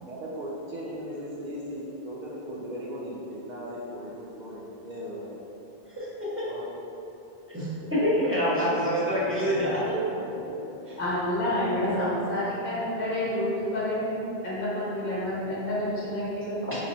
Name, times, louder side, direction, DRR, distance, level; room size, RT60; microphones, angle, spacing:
voice 1, 0.0-5.4 6.5-6.6 7.5-7.7 9.1-11.0 11.7-12.1 16.4-16.5, equal, 55° right, -5 dB, 0.6 m, -38 dB
voice 2, 7.9-10.0 16.7-16.8, equal, 15° right, -11 dB, 0.7 m, -25 dB
voice 3, 11.0-16.6, left 1 dB, 55° left, -8 dB, 1.2 m, -29 dB
4.2 x 2.8 x 2.6 m, 2.9 s
omnidirectional pair, 1.1 m